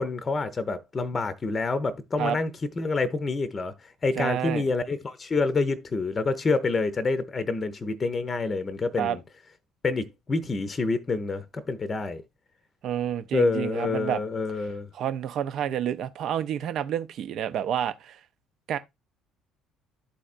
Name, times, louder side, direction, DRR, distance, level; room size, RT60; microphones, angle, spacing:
voice 1, 0.0-3.7 4.0-9.2 9.8-12.2 13.3-14.9, left 3 dB, 30° left, 0.7 m, -27 dB
voice 2, 4.2-4.7 9.0-9.2 12.8-14.2 14.9-18.2 18.7-18.8, right 10 dB, 55° right, 0.6 m, -29 dB
11.5 x 4.2 x 2.4 m
figure-of-eight pair, 50°, 0 cm